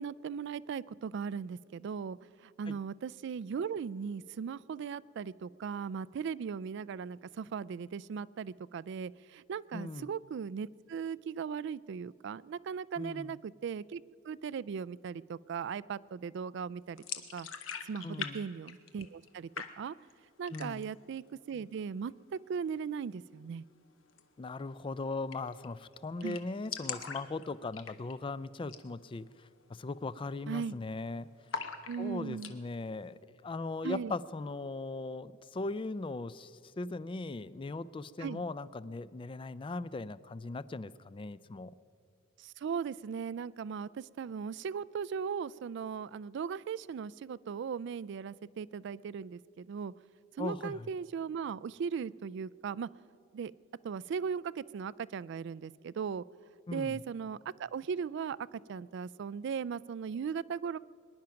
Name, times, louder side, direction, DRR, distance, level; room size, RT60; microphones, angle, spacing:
voice 1, 0.0-2.2 2.6-17.0 17.3-17.5 17.9-19.5 19.8-19.9 20.4-22.1 22.5-23.6 26.2-26.4 30.5-30.8 31.9-32.5 33.8-34.1 38.2-38.4 42.4-49.9 50.4-52.9 53.3-53.5 53.8-56.2 56.7-60.8, right 6 dB, 60° right, 19 dB, 0.3 m, -38 dB
voice 2, 9.7-10.1 13.0-13.4 18.0-18.4 20.5-20.9 24.4-29.3 29.7-31.3 32.0-33.2 33.4-41.8 50.4-50.9 56.7-57.0, left 3 dB, 25° left, 17 dB, 0.4 m, -39 dB
sound 1, 17.0-18.3 18.6-19.3 19.5-20.1 20.4-21.0 21.3-21.4 21.7-22.4 24.1-24.2 24.5-24.6 24.9-25.0 25.3-25.7 25.9-26.0 26.2-28.3 28.6-28.9 29.2-29.3 29.9-30.1 30.4-31.0 31.5-32.5, left 7 dB, 80° left, 1.0 m, -41 dB
23.0 x 10.5 x 5.8 m, 2.5 s
head